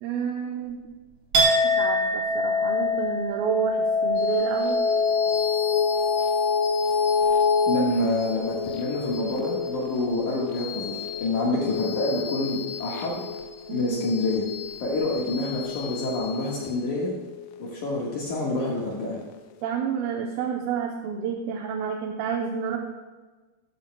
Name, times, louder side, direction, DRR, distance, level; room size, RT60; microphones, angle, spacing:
voice 1, 0.0-0.8 1.8-4.8 13.7-14.0 19.6-22.8, right 7 dB, 80° right, 0 dB, 2.7 m, -29 dB
Chink clink, 1.3-9.0 9.4-10.0, left 2 dB, 50° right, 3.7 m, -26 dB
sound 1, 4.2-18.9, left 6 dB, 90° left, 2.4 m, -29 dB
voice 2, 7.7-13.2 13.7-14.5 14.8-17.1 17.6-19.2, left 2 dB, 60° left, -4 dB, 2.8 m, -27 dB
13.5 x 13.0 x 2.3 m, 1.3 s
omnidirectional pair, 4.2 m